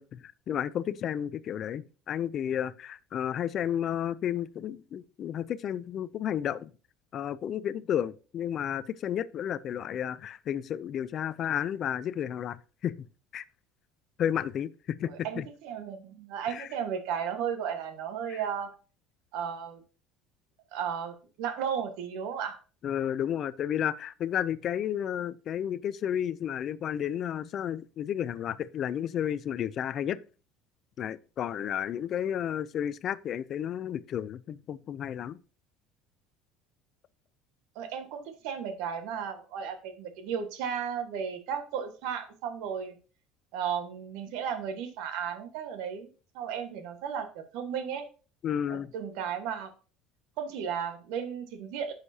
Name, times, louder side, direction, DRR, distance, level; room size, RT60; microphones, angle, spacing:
voice 1, 0.0-6.7 7.1-12.9 13.3-13.4 14.2-15.4 16.5-16.7 18.3-18.4 22.8-30.2 31.0-35.4 48.4-48.9, left 9 dB, 30° left, 0.4 m, -32 dB
voice 2, 15.0-18.7 19.3-19.8 20.7-22.6 37.7-42.9 43.5-46.1 46.3-48.0 48.7-49.7 50.4-51.9, right 7 dB, 65° right, 1.4 m, -34 dB
9.9 x 6.5 x 2.8 m
cardioid pair, 175°, 0 cm